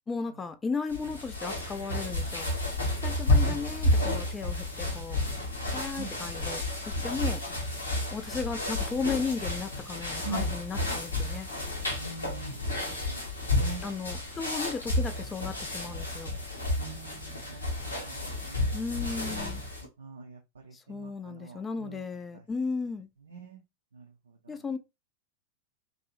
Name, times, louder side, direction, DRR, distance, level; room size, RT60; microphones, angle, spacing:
voice 1, 0.1-2.5 3.0-5.2 5.7-6.6 7.0-7.4 8.1-11.5 13.8-16.4 18.7-19.6 20.7-23.1 24.5-24.8, left 4 dB, 15° left, 0.3 m, -35 dB
sound 1, 0.9-19.9, left 1 dB, 75° left, 0.9 m, -31 dB
voice 2, 10.2-10.5 12.0-13.8 16.8-18.7 19.0-19.4 20.0-22.1 22.3-22.4 23.2-23.6 23.9-24.6, right 4 dB, 70° right, 0.4 m, -44 dB
2.5 x 2.0 x 2.9 m
figure-of-eight pair, 90°, 0 cm